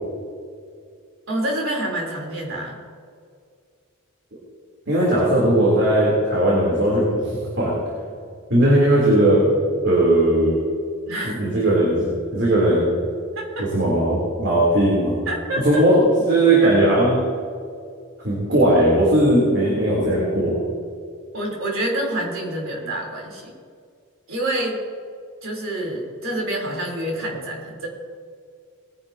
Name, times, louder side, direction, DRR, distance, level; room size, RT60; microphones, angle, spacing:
voice 1, 1.3-2.7 11.1-11.5 13.4-13.7 15.3-15.8 21.3-23.5 24.3-24.8 25.4-27.9, right 1 dB, 70° right, -2 dB, 3.7 m, -27 dB
voice 2, 4.9-7.3 7.6-7.7 8.5-9.5 9.8-10.6 11.2-12.9 13.6-15.2 15.6-17.2 18.2-20.6, right 1 dB, 55° right, -5 dB, 3.5 m, -18 dB
20.5 x 10.5 x 2.9 m, 2.2 s
head